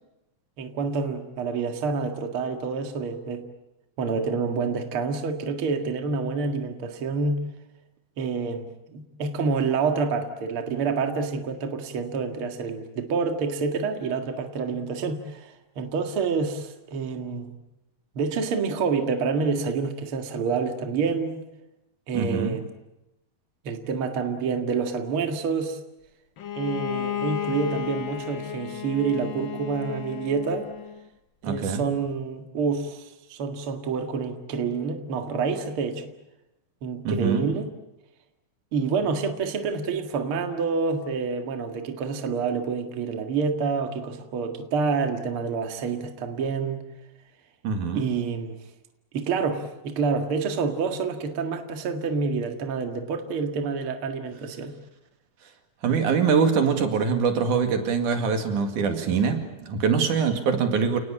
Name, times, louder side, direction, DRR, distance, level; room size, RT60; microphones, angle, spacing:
voice 1, 0.6-3.5 4.0-7.4 8.2-17.6 18.2-21.4 22.1-22.7 23.6-25.8 26.6-30.7 31.4-36.1 36.8-37.7 38.7-46.8 47.9-48.6 49.1-54.7, right 5 dB, 50° right, 5 dB, 2.5 m, -28 dB
voice 2, 22.1-22.6 31.4-31.8 37.1-37.5 47.6-48.1 55.8-61.0, right 5 dB, 80° right, 6 dB, 3.6 m, -23 dB
Bowed string instrument, 26.4-31.1, left 9 dB, 60° left, 1.3 m, -33 dB
29.5 x 19.5 x 8.7 m, 0.95 s
omnidirectional pair, 3.5 m